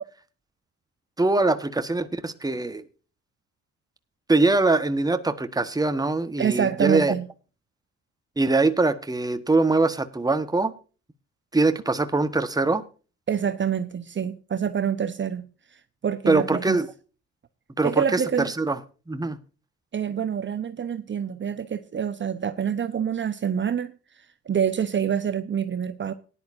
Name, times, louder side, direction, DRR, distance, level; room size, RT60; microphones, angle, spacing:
voice 1, 1.2-2.8 4.3-7.1 8.4-10.7 11.5-12.8 16.3-16.9 17.8-18.8 19.1-19.4, right 3 dB, 10° right, 1.3 m, -23 dB
voice 2, 6.4-7.3 13.3-15.5 15.7-16.8 17.8-18.5 19.9-23.9 24.5-26.1, right 8 dB, 40° right, 1.0 m, -26 dB
18.0 x 11.0 x 2.7 m
cardioid pair, 90°, 30 cm